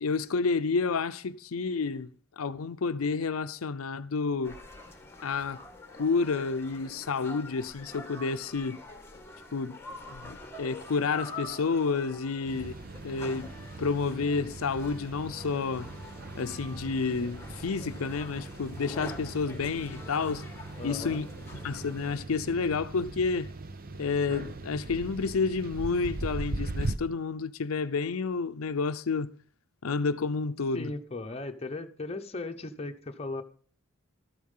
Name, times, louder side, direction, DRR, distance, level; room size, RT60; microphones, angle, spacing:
voice 1, 0.0-2.1 2.4-4.6 5.2-5.6 6.0-8.8 9.5-9.8 10.1-12.7 13.0-13.5 13.8-15.9 16.4-20.5 20.8-21.3 21.6-23.5 24.0-29.3 29.8-30.9, left 4 dB, 85° left, 0.6 m, -30 dB
sound 1, 4.4-22.2, left 2 dB, 10° left, 1.7 m, -46 dB
sound 2, 12.4-27.0, right 2 dB, 45° right, 0.8 m, -40 dB
voice 2, 20.8-21.2 30.7-33.4, left 2 dB, 30° left, 1.0 m, -37 dB
13.0 x 8.6 x 5.4 m
head